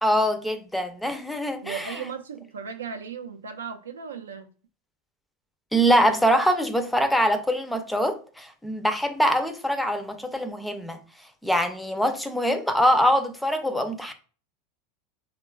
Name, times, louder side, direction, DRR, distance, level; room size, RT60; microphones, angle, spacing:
voice 1, 0.0-1.9 5.7-11.0 11.4-14.1, equal, 5° left, 0.4 m, -23 dB
voice 2, 1.6-4.5, right 6 dB, 90° right, 0.3 m, -36 dB
3.1 x 2.2 x 2.3 m
hypercardioid pair, 90°, 0 cm